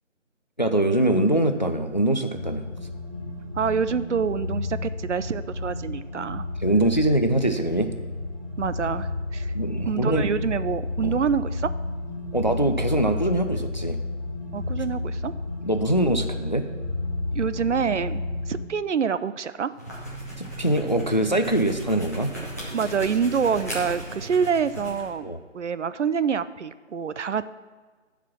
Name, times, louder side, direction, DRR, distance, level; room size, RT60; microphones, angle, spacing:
voice 1, 0.6-2.7 6.6-7.9 9.5-10.2 11.0-11.2 12.3-14.0 15.6-16.6 20.4-22.3 25.2-25.4, right 1 dB, 40° left, 7 dB, 0.4 m, -23 dB
sound 1, 2.3-18.6, left 2 dB, 25° right, 0.7 m, -31 dB
voice 2, 3.6-6.4 8.6-11.7 14.5-15.3 17.3-19.7 22.7-27.5, right 6 dB, 65° right, 15 dB, 0.5 m, -26 dB
sound 2, 19.7-25.1, equal, 15° left, 0.8 m, -36 dB
10.5 x 4.9 x 5.9 m, 1.4 s
figure-of-eight pair, 165°, 38 cm